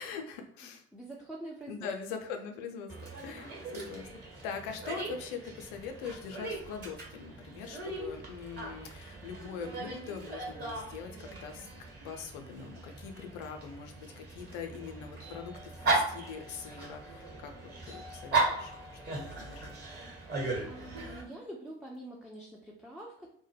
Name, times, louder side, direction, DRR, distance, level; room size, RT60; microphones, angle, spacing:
voice 1, 0.0-0.8 1.7-2.9 3.2-11.7 12.0-17.5 17.9-18.7 19.0-19.7, left 6 dB, 60° left, 5 dB, 0.5 m, -42 dB
voice 2, 0.9-2.2 20.7-23.3, right 1 dB, ahead, -3 dB, 0.4 m, -45 dB
Dog, 2.9-21.2, right 3 dB, 30° right, 1.1 m, -37 dB
2.1 x 2.0 x 3.2 m, 0.70 s
figure-of-eight pair, 55°, 32 cm